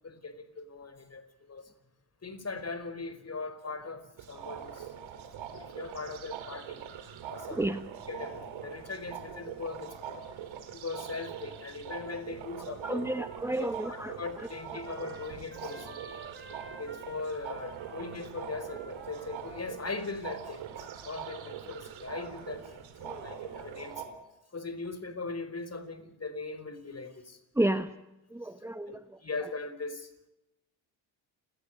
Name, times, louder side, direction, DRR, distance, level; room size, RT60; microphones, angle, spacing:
voice 1, 0.0-1.7 2.2-5.2 5.6-6.8 7.3-7.6 8.1-10.3 10.7-13.0 13.6-16.1 16.8-24.1 24.5-27.4 28.9-29.0 29.2-30.1, left 3 dB, 30° left, 4.7 m, -40 dB
sound 1, 4.2-24.1, right 8 dB, 65° right, 4.3 m, -43 dB
voice 2, 7.5-7.8 12.7-14.5 23.0-23.2 27.5-27.9 28.3-29.0 29.4-29.5, right 1 dB, 5° right, 1.3 m, -32 dB
Trumpet, 12.6-20.2, right 3 dB, 25° right, 2.8 m, -52 dB
29.5 x 18.0 x 6.6 m
hypercardioid pair, 55°, 50 cm